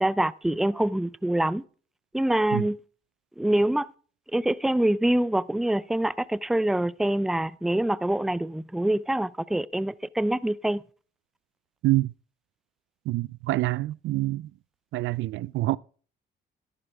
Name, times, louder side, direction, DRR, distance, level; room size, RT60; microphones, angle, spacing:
voice 1, 0.0-1.6 2.1-2.8 3.4-3.9 4.3-10.8, right 1 dB, ahead, 0.5 m, -25 dB
voice 2, 13.1-14.5 14.9-15.8, right 17 dB, 80° right, 0.4 m, -26 dB
12.0 x 11.0 x 3.5 m
cardioid pair, 90°, 20 cm